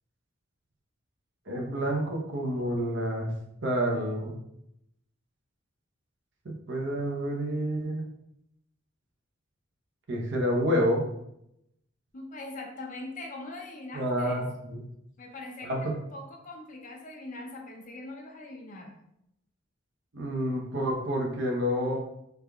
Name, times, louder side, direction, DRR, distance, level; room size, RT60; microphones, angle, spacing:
voice 1, 1.5-3.3 3.6-4.4 6.4-8.1 10.1-11.1 13.9-14.8 15.6-15.9 20.1-22.0, equal, 60° right, 0 dB, 0.7 m, -29 dB
voice 2, 12.1-14.5 15.2-18.9, left 2 dB, 40° left, 2 dB, 0.5 m, -42 dB
3.5 x 3.4 x 2.3 m, 0.79 s
head